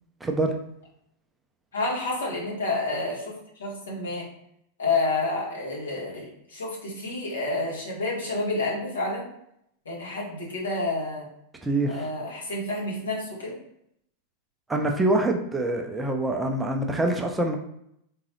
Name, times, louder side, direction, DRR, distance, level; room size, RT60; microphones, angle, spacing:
voice 1, 0.2-0.5 11.6-12.0 14.7-17.6, right 2 dB, 10° right, 2 dB, 0.5 m, -25 dB
voice 2, 1.7-3.3 3.6-4.3 4.8-9.2 9.8-11.3 11.9-13.5, left 2 dB, 70° left, -3 dB, 1.5 m, -29 dB
3.7 x 3.7 x 3.1 m, 0.74 s
figure-of-eight pair, 90°, 0 cm